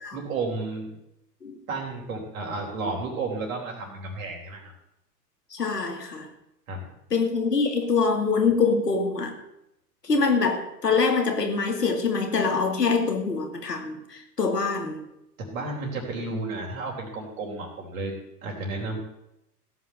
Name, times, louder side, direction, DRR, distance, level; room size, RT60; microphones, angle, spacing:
voice 1, 0.1-1.0 1.7-4.7 6.7-6.8 15.4-18.1 18.4-19.0, right 3 dB, 55° right, 0 dB, 4.0 m, -32 dB
voice 2, 5.5-6.3 7.1-9.4 10.0-15.0, left 4 dB, 85° left, 4 dB, 2.5 m, -24 dB
16.5 x 6.0 x 8.0 m, 0.85 s
figure-of-eight pair, 100°, 47 cm